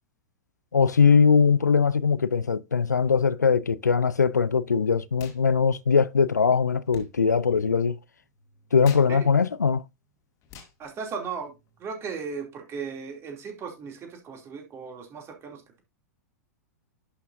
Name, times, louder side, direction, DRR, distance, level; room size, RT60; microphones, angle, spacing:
voice 1, 0.7-8.0 8.7-9.8, left 5 dB, 85° left, 0.4 m, -21 dB
sound 1, 5.1-5.4 5.7-11.9, left 5 dB, 35° left, 2.0 m, -51 dB
voice 2, 10.8-11.5 11.8-15.8, right 5 dB, 30° right, 2.7 m, -36 dB
11.0 x 6.0 x 2.6 m
figure-of-eight pair, 100°, 9 cm